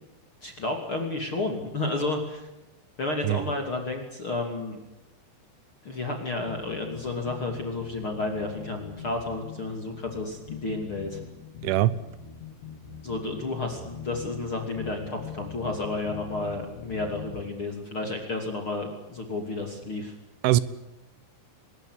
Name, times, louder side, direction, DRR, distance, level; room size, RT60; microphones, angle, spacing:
voice 1, 0.4-2.5 3.0-4.8 5.8-11.2 13.0-20.1, left 2 dB, 35° left, 3 dB, 2.9 m, -31 dB
sound 1, 6.5-17.4, left 7 dB, 75° left, 4.4 m, -43 dB
voice 2, 11.6-11.9 20.4-20.6, right 15 dB, 85° right, 17 dB, 3.5 m, -21 dB
23.0 x 20.5 x 8.2 m, 1.0 s
omnidirectional pair, 5.3 m